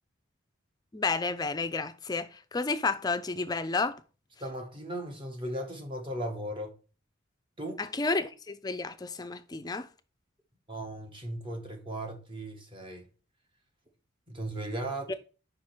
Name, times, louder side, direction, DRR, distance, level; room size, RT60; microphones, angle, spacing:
voice 1, 0.9-4.0 7.8-9.9 15.1-15.2, left 3 dB, 20° left, 0.4 m, -31 dB
voice 2, 4.4-6.7 7.6-7.8 10.7-13.1 14.3-15.1, right 1 dB, 25° right, 1.0 m, -37 dB
4.8 x 4.8 x 4.4 m
head